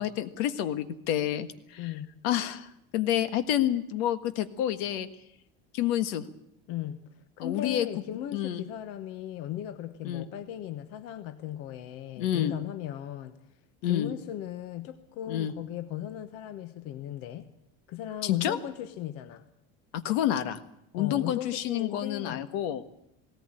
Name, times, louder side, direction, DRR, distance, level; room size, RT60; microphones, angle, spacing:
voice 1, 0.0-1.5 1.7-1.9 2.2-5.1 5.7-6.3 7.4-7.9 8.3-8.6 10.0-10.3 12.2-12.5 13.8-14.1 15.3-15.5 18.2-18.6 20.0-20.6 20.9-22.9, left 11 dB, 75° left, 11 dB, 1.6 m, -28 dB
voice 2, 1.8-2.1 6.7-7.0 7.4-13.3 13.8-17.5 17.9-19.4 20.9-22.5, left 11 dB, 50° left, 10 dB, 1.1 m, -37 dB
18.0 x 18.0 x 9.0 m, 0.80 s
cardioid pair, 180°, 30 cm